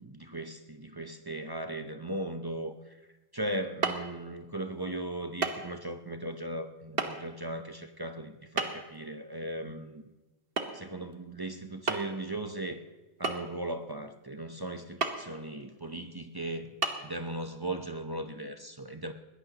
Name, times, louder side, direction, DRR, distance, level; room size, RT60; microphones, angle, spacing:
voice 1, 0.0-3.0 3.3-10.0 10.7-12.8 13.2-16.8 17.0-19.1, right 1 dB, 25° right, 6 dB, 0.6 m, -38 dB
sound 1, 3.8-4.1 5.4-5.6 5.9-6.0 7.0-7.1 8.6-9.0 10.6-10.8 11.1-11.2 11.9-12.2 13.2-13.8 15.0-15.2 15.8-15.9 16.8-16.9, right 3 dB, 60° right, 1.5 m, -30 dB
21.5 x 17.5 x 2.9 m, 1.1 s
omnidirectional pair, 1.1 m